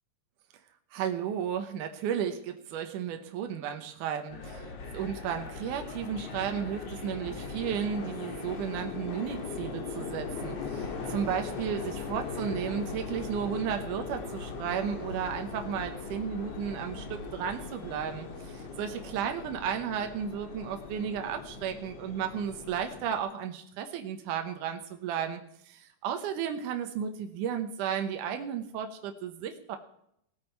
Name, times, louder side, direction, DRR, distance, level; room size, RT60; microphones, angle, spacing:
voice 1, 0.9-4.7 4.9-25.4 25.7-29.8, right 8 dB, 80° right, 6 dB, 2.5 m, -34 dB
sound 1, 4.3-23.2, left 4 dB, 55° left, 2.7 m, -39 dB
18.0 x 8.5 x 4.6 m, 0.72 s
omnidirectional pair, 3.7 m